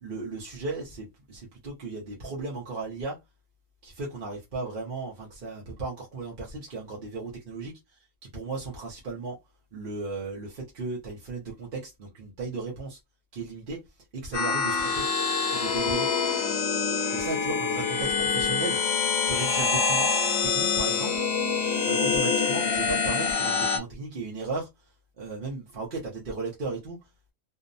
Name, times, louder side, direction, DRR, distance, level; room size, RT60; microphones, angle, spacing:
voice 1, 0.0-3.2 3.8-8.0 8.3-9.4 9.7-13.0 13.3-13.9 14.1-15.1 15.5-16.1 17.1-18.8 19.2-20.1 20.4-21.2 21.8-24.9 25.2-27.3, right 3 dB, 50° right, 0.8 m, -35 dB
sound 1, 14.3-23.8, left 5 dB, 60° left, 0.9 m, -26 dB
2.7 x 2.0 x 2.5 m
omnidirectional pair, 1.4 m